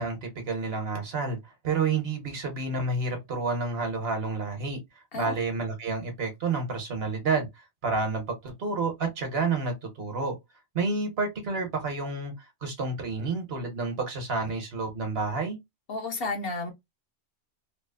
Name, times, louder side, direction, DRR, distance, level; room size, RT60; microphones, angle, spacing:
voice 1, 0.0-4.8 5.1-10.3 10.7-15.6, right 4 dB, 60° right, 1.1 m, -30 dB
voice 2, 15.9-16.7, left 3 dB, 60° left, 0.9 m, -32 dB
3.1 x 2.0 x 2.2 m
omnidirectional pair, 1.2 m